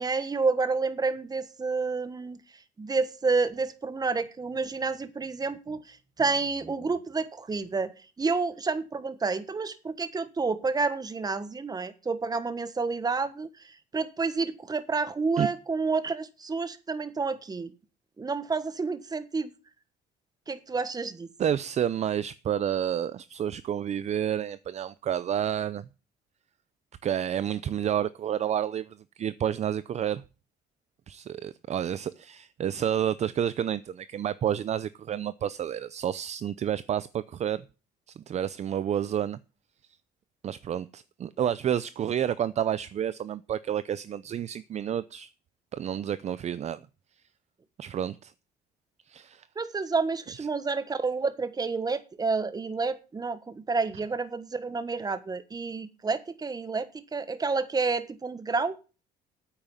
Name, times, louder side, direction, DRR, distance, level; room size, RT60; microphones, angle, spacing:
voice 1, 0.0-2.4 2.8-13.5 13.9-17.7 18.2-19.5 20.5-21.3 49.6-58.8, right 4 dB, 20° right, 1.4 m, -29 dB
voice 2, 21.4-25.8 27.0-30.2 31.1-37.6 38.2-39.4 40.4-45.3 45.7-46.8 47.8-48.3 49.1-49.5 50.4-50.5, right 9 dB, 40° right, 0.6 m, -30 dB
9.1 x 8.8 x 7.3 m
cardioid pair, 110°, 17 cm